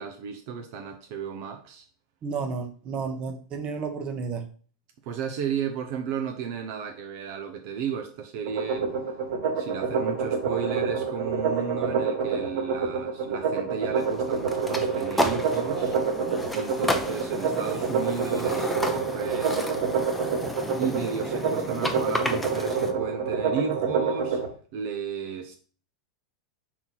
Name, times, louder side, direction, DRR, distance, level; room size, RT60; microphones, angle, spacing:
voice 1, 0.0-1.8 5.0-9.0 9.6-16.0 16.5-19.8 20.7-24.4 24.7-25.6, right 7 dB, 50° right, 0.7 m, -34 dB
voice 2, 2.2-4.5, right 5 dB, 30° right, 1.0 m, -32 dB
sound 1, 8.5-24.5, right 5 dB, 75° right, 2.5 m, -27 dB
sound 2, 14.0-22.9, left 1 dB, 5° left, 0.7 m, -32 dB
4.5 x 4.1 x 5.7 m
supercardioid pair, 155°, 4 cm